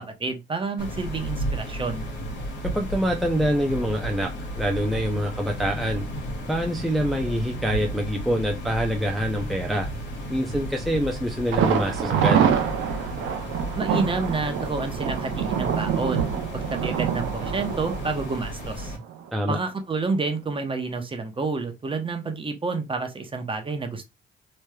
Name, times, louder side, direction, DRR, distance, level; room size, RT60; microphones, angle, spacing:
voice 1, 0.2-2.0 13.8-18.9 19.5-24.1, right 3 dB, 25° right, 0.8 m, -29 dB
sound 1, 0.8-19.0, right 1 dB, 60° left, 1.3 m, -33 dB
voice 2, 2.7-6.0 6.5-9.9 10.3-12.4 19.3-19.6, equal, ahead, 0.5 m, -25 dB
Thunder, 11.5-19.3 19.6-19.7 20.1-20.2, right 8 dB, 80° right, 0.7 m, -26 dB
3.2 x 3.0 x 2.2 m
cardioid pair, 90°, 20 cm